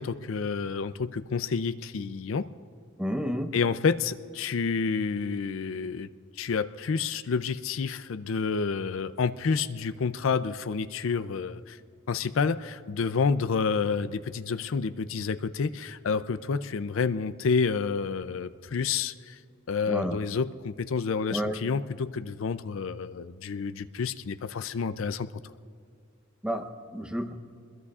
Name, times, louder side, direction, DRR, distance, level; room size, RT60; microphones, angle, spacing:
voice 1, 0.0-2.5 3.5-6.1 6.4-11.8 12.1-19.4 19.7-25.3, left 5 dB, 70° left, 12 dB, 0.5 m, -29 dB
voice 2, 3.0-3.5 19.9-20.2 21.3-21.6 26.4-27.3, equal, 5° right, 7 dB, 0.8 m, -30 dB
26.5 x 21.5 x 2.4 m, 2.3 s
head